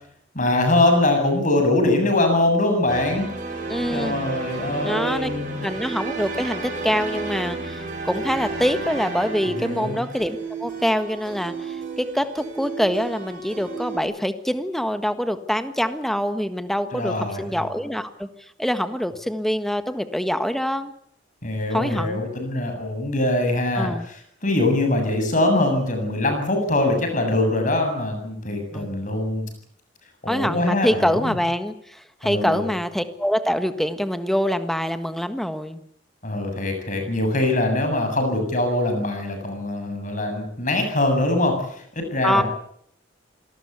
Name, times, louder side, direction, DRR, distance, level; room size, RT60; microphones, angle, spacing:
voice 1, 0.3-3.3 3.9-5.7 9.6-10.0 16.9-17.7 21.4-29.5 30.2-31.4 32.2-32.7 36.2-42.4, left 2 dB, 40° left, 5 dB, 7.5 m, -23 dB
sound 1, 2.9-14.0, right 4 dB, 45° right, 7.7 m, -32 dB
voice 2, 3.7-4.2 4.8-5.3 5.6-18.3 18.6-20.9 21.7-22.2 23.8-24.0 28.7-28.9 30.3-35.8 42.2-42.4, equal, ahead, 10 dB, 1.4 m, -25 dB
26.5 x 19.0 x 8.3 m, 0.68 s
head